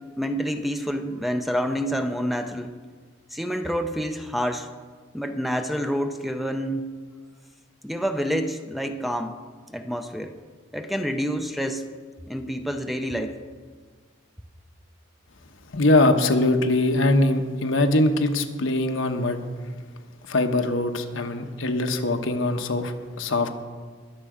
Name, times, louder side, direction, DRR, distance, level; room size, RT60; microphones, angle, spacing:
voice 1, 0.0-2.8 3.3-4.7 5.1-6.9 7.8-9.4 9.7-10.3 10.7-11.9 12.3-13.4, equal, ahead, 7 dB, 0.5 m, -28 dB
voice 2, 15.7-19.4 20.3-23.5, left 2 dB, 80° left, 5 dB, 1.1 m, -22 dB
20.5 x 7.0 x 5.0 m, 1.5 s
head